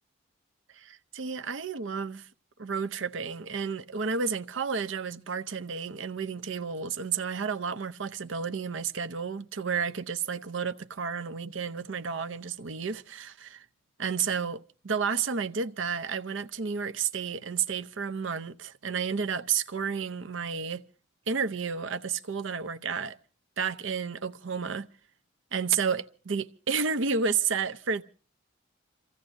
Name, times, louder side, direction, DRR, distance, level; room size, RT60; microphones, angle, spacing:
voice 1, 0.8-2.3 2.6-13.6 14.0-20.8 21.3-23.2 23.6-24.9 25.5-28.0, right 6 dB, 65° right, 0.7 m, -31 dB
28.0 x 16.0 x 2.6 m
head